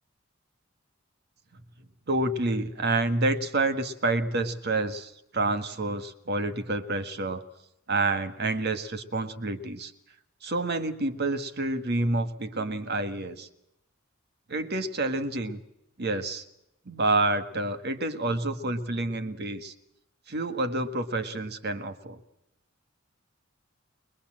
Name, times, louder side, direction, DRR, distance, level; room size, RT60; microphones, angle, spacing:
voice 1, 2.1-7.4 7.9-9.9 10.4-13.5 14.5-15.6 16.0-16.4 16.8-19.7 20.3-22.2, right 2 dB, 55° right, 10 dB, 1.7 m, -28 dB
22.0 x 22.0 x 7.7 m, 0.83 s
head